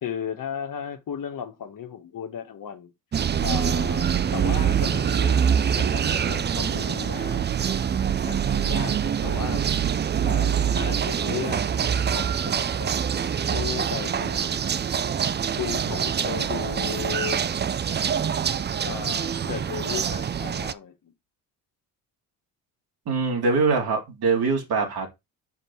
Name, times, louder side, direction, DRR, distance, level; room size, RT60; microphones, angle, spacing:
voice 1, 0.0-2.9 3.4-7.5 8.2-9.7 10.2-13.1 13.5-14.6 15.6-17.4 18.8-21.1, left 8 dB, 50° left, 1.6 m, -35 dB
sound 1, 3.1-20.7, right 8 dB, 25° right, 0.5 m, -25 dB
voice 2, 23.0-25.1, right 4 dB, 60° right, 3.4 m, -23 dB
5.9 x 5.2 x 4.7 m
supercardioid pair, 65°, 41 cm